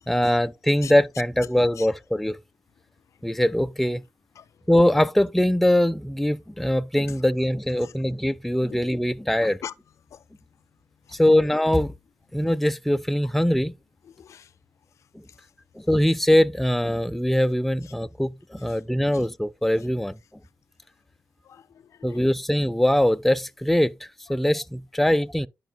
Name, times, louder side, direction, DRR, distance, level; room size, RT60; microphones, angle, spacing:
voice 1, 0.1-2.4 3.2-4.0 4.7-9.6 11.1-11.9 12.3-13.7 15.8-20.2 22.0-23.9 24.3-25.5, left 1 dB, 5° left, 0.4 m, -22 dB
voice 2, 9.4-9.7 10.1-10.2 11.0-11.2 13.2-13.3 14.0-14.5 15.3-15.5 17.8-17.9 18.7-18.8 19.1-19.2 21.4-22.2 24.3-24.4, left 9 dB, 65° left, 0.4 m, -43 dB
12.0 x 5.3 x 2.2 m
supercardioid pair, 55°, 6 cm